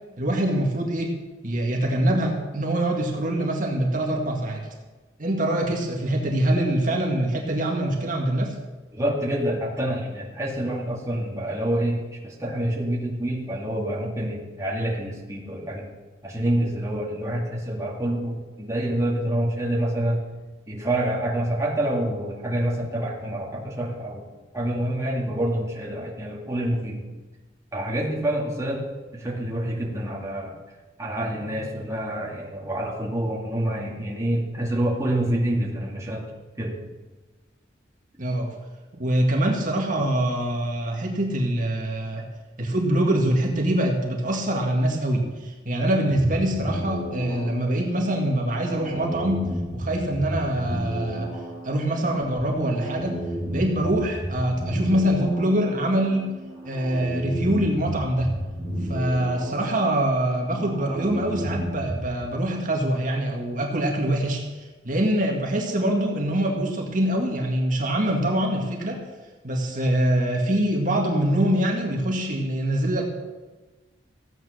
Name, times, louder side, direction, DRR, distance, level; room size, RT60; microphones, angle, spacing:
voice 1, 0.2-1.2 1.4-4.7 5.2-8.6 38.2-38.5 39.0-42.3 42.6-51.3 51.6-53.2 53.5-56.3 56.7-58.3 58.9-64.4 64.8-69.0 69.4-73.0, right 1 dB, 45° right, 0 dB, 1.9 m, -24 dB
voice 2, 8.9-16.0 16.2-20.2 20.7-24.2 24.5-27.1 27.7-28.9 29.1-30.6 31.0-36.3 36.6-36.8, right 1 dB, 15° right, -3 dB, 2.1 m, -27 dB
sound 1, 46.1-62.1, equal, 45° left, 5.5 m, -33 dB
15.0 x 9.0 x 6.5 m, 1.2 s
head